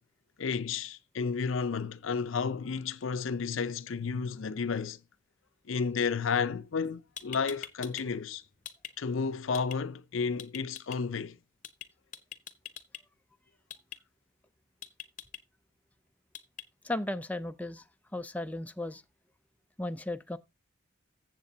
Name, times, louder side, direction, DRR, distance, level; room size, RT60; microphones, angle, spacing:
voice 1, 0.4-5.0 5.7-8.4 9.0-11.4, left 5 dB, 80° left, 0.6 m, -32 dB
sound 1, 6.8-6.9 7.2-8.0 8.3-8.9 9.5-9.8 10.4-11.0 11.6-11.9 12.1-13.0 13.7-14.0 14.8-15.4 16.3-16.6, left 9 dB, 40° left, 0.8 m, -42 dB
voice 2, 16.8-17.8 18.1-19.0 19.8-20.4, left 1 dB, 5° left, 0.4 m, -35 dB
14.5 x 7.4 x 2.7 m
head